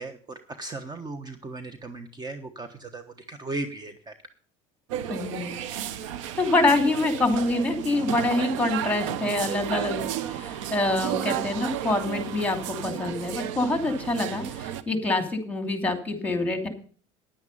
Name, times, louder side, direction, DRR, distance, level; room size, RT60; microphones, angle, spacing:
voice 1, 0.0-4.1, right 2 dB, 25° right, 9 dB, 1.1 m, -37 dB
sound 1, 4.9-14.8, right 10 dB, 90° right, 0.8 m, -33 dB
voice 2, 5.1-5.6 6.4-16.7, left 2 dB, 10° left, 6 dB, 2.9 m, -26 dB
10.0 x 9.5 x 5.5 m, 0.43 s
supercardioid pair, 90°, 16 cm